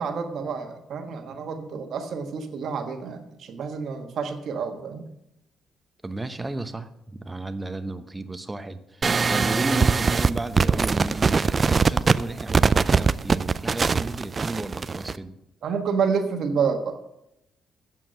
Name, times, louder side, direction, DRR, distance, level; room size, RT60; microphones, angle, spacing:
voice 1, 0.0-5.0 15.6-17.0, right 6 dB, 65° right, 6 dB, 1.4 m, -28 dB
voice 2, 6.0-15.3, right 2 dB, 15° right, 9 dB, 0.9 m, -33 dB
sound 1, 9.0-15.2, right 4 dB, 35° right, 0.4 m, -21 dB
8.6 x 7.4 x 7.7 m, 0.86 s
cardioid pair, 90°, 0 cm